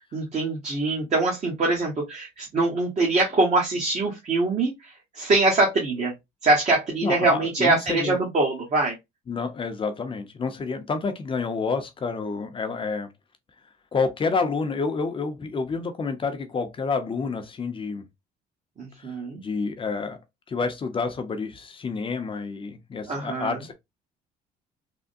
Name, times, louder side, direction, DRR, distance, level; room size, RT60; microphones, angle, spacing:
voice 1, 0.1-6.1 6.4-8.9 18.8-19.4 23.1-23.6, right 2 dB, 40° right, 1.1 m, -23 dB
voice 2, 7.0-8.2 9.3-13.1 13.9-18.0 19.0-19.1 19.4-20.2 20.5-23.7, left 4 dB, 30° left, 0.6 m, -29 dB
3.4 x 2.1 x 2.5 m
cardioid pair, 110°, 17 cm